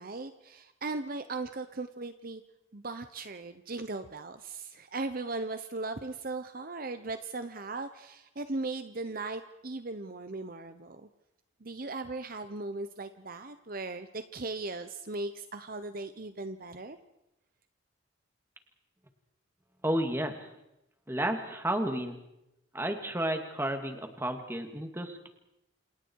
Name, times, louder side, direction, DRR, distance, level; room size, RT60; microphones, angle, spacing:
voice 1, 0.0-2.4 2.7-11.1 11.6-17.0, right 3 dB, 45° right, 10 dB, 0.9 m, -38 dB
voice 2, 19.8-20.5 21.1-22.2 22.7-25.3, right 1 dB, 10° right, 5 dB, 2.4 m, -32 dB
28.5 x 28.5 x 4.8 m, 0.88 s
head